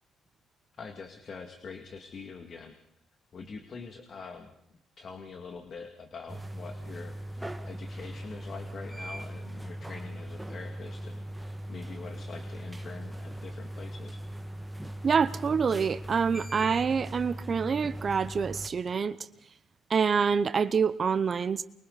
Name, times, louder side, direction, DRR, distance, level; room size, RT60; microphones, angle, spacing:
voice 1, 0.8-2.7 3.3-4.5 5.0-14.2, left 5 dB, 50° left, 5 dB, 2.4 m, -44 dB
sound 1, 6.3-18.7, right 1 dB, 5° right, 1.9 m, -40 dB
voice 2, 15.0-19.2 19.9-21.6, right 6 dB, 45° right, 13 dB, 0.9 m, -26 dB
29.0 x 23.5 x 4.2 m, 0.69 s
cardioid pair, 90°, 0 cm